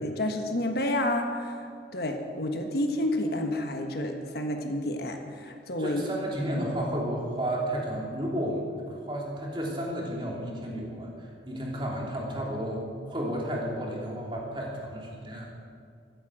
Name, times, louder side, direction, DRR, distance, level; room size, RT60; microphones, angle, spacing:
voice 1, 0.0-6.0, left 1 dB, 55° left, 4 dB, 1.4 m, -30 dB
voice 2, 5.8-15.5, right 1 dB, 25° right, -2 dB, 3.2 m, -32 dB
13.5 x 12.5 x 7.9 m, 2.3 s
head